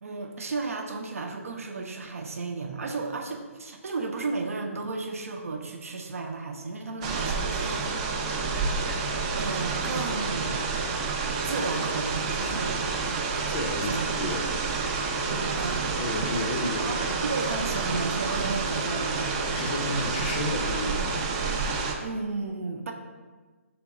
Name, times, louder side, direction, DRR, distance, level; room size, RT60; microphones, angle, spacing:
voice 1, 0.0-8.0 9.4-10.6 11.4-12.8 13.8-14.0 15.6-15.9 16.8-17.0 17.2-19.4 22.0-22.9, right 3 dB, 70° right, 3 dB, 0.6 m, -33 dB
sound 1, 7.0-21.9, right 4 dB, 25° right, 0.4 m, -29 dB
voice 2, 13.5-14.4 16.0-16.9 19.5-21.1, left 1 dB, 35° left, 3 dB, 0.6 m, -32 dB
3.5 x 2.9 x 4.7 m, 1.4 s
figure-of-eight pair, 145°, 8 cm